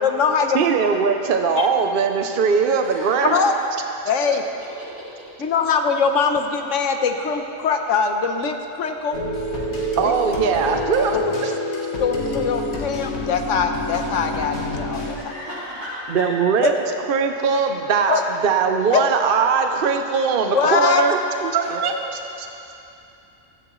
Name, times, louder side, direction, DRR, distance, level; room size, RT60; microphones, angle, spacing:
voice 1, 0.0-0.7 1.6-1.7 3.3-3.5 4.0-4.4 5.4-9.2 10.0-10.1 11.1-11.2 12.0-15.2 16.6-16.7 18.1-18.2 18.9-19.0 20.5-21.0, left 5 dB, 65° left, 5 dB, 1.2 m, -22 dB
voice 2, 0.5-3.3 10.0-11.5 16.1-16.7 17.1-21.9 22.4-22.5, right 5 dB, 55° right, 5 dB, 0.6 m, -20 dB
voice 3, 2.8-3.5 4.8-4.9 15.1-16.3 21.6-21.9, equal, 85° right, -16 dB, 4.2 m, -34 dB
sound 1, 9.1-15.1, left 1 dB, 90° left, 1.9 m, -27 dB
15.5 x 14.0 x 3.1 m, 2.8 s
omnidirectional pair, 1.4 m